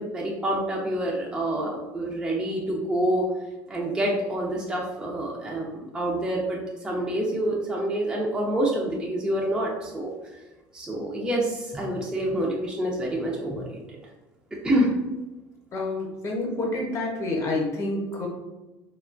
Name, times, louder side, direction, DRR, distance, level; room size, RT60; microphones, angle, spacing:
voice 1, 0.0-3.3 3.7-6.6 6.8-10.1 10.7-13.8 14.6-14.9, right 1 dB, 10° right, -3 dB, 0.4 m, -27 dB
voice 2, 15.7-18.3, left 2 dB, 35° left, -1 dB, 0.8 m, -28 dB
2.8 x 2.2 x 2.4 m, 1.1 s
supercardioid pair, 125°, 9 cm